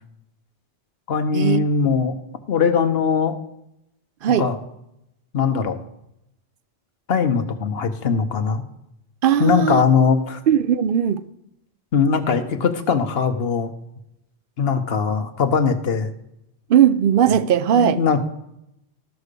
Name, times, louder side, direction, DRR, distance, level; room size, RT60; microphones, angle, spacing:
voice 1, 1.1-2.1 2.5-3.4 4.4-4.6 5.3-5.8 7.1-8.6 9.4-10.4 11.9-13.7 14.6-16.1 17.7-18.2, left 6 dB, 65° left, 1.1 m, -20 dB
voice 2, 9.2-9.8 10.5-11.2 16.7-18.0, right 9 dB, 60° right, 0.7 m, -18 dB
13.0 x 4.8 x 6.7 m
omnidirectional pair, 1.1 m